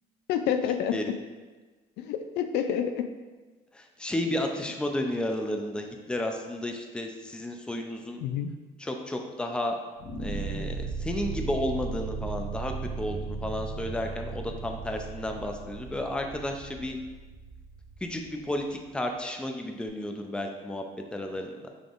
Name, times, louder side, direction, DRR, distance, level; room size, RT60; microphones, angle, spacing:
voice 1, 0.3-1.0 2.0-3.1 8.2-8.5, left 9 dB, 85° left, 8 dB, 0.4 m, -28 dB
voice 2, 3.7-8.2 8.8-9.8 10.2-17.0 18.0-20.8 21.1-21.6, left 1 dB, 5° left, 3 dB, 0.4 m, -32 dB
sound 1, 10.0-19.1, right 4 dB, 55° left, 1.1 m, -37 dB
5.8 x 3.4 x 2.5 m, 1.3 s
cardioid pair, 110°, 17 cm